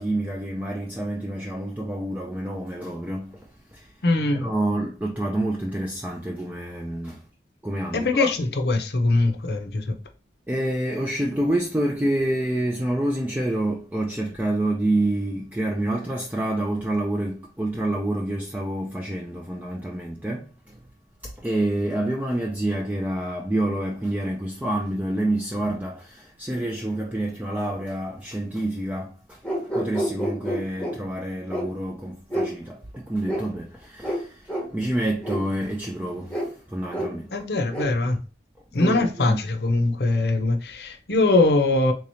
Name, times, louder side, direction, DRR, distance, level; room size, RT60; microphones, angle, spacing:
voice 1, 0.0-3.9 4.3-7.2 7.6-8.3 10.5-20.8 21.2-29.4 29.7-37.3 38.8-39.4, right 1 dB, 10° right, 0.4 m, -28 dB
voice 2, 4.0-4.5 7.9-9.9 37.3-38.2 38.7-41.9, left 2 dB, 60° left, 0.7 m, -22 dB
sound 1, 29.4-31.0 31.5-31.7 32.3-32.5 33.3-33.4 34.0-34.2 34.5-34.7 35.2-35.4 36.3-36.5 36.9-37.1 37.7-37.8, equal, 5° left, 0.9 m, -28 dB
3.8 x 3.1 x 2.6 m
head